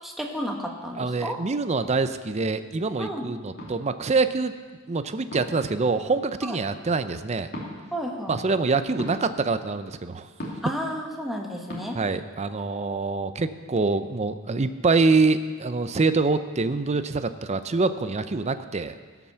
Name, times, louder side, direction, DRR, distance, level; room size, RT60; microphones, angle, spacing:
voice 1, 0.0-1.4 3.0-3.3 6.4-6.6 7.9-8.4 10.6-12.0, equal, ahead, 0 dB, 1.3 m, -32 dB
voice 2, 1.0-4.5 4.9-7.5 8.3-10.3 11.9-18.9, right 3 dB, 30° right, 11 dB, 0.5 m, -25 dB
sound 1, 3.6-3.7 5.3-5.6 7.5-7.7 9.0-9.2 10.4-10.7 11.7-11.8, equal, 50° left, 2.8 m, -35 dB
17.0 x 5.9 x 6.9 m, 1.5 s
head